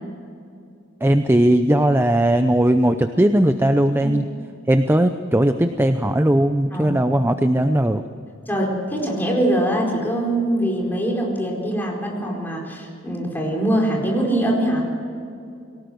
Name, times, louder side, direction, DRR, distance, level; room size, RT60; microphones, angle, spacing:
voice 1, 1.0-4.2 4.7-8.0, right 1 dB, 10° right, 8 dB, 0.6 m, -18 dB
voice 2, 8.5-14.8, right 1 dB, 10° left, -1 dB, 4.6 m, -23 dB
23.0 x 18.5 x 7.9 m, 2.5 s
head